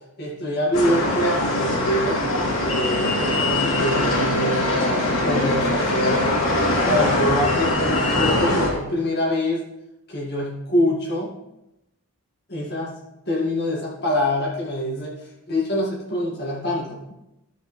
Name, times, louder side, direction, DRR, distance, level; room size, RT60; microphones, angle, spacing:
voice 1, 0.2-2.2 2.7-6.2 6.8-9.6 10.1-11.3 12.5-12.9 13.3-15.1 15.5-17.0, left 1 dB, 45° left, -4 dB, 1.9 m, -25 dB
sound 1, 0.7-8.7, left 1 dB, 70° left, 2.5 m, -22 dB
13.5 x 6.5 x 3.2 m, 0.90 s
head